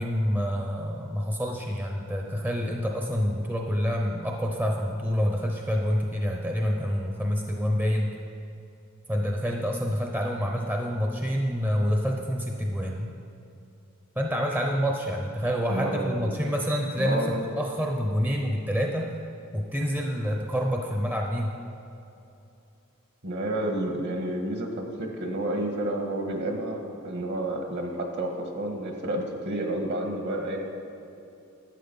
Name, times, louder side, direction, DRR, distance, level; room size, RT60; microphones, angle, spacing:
voice 1, 0.0-8.1 9.1-13.1 14.2-19.1 19.5-21.5, equal, 10° right, 1 dB, 0.6 m, -27 dB
voice 2, 15.7-16.3 17.0-17.4 23.2-30.6, right 1 dB, 55° right, 3 dB, 1.4 m, -30 dB
11.5 x 8.4 x 5.4 m, 2.7 s
head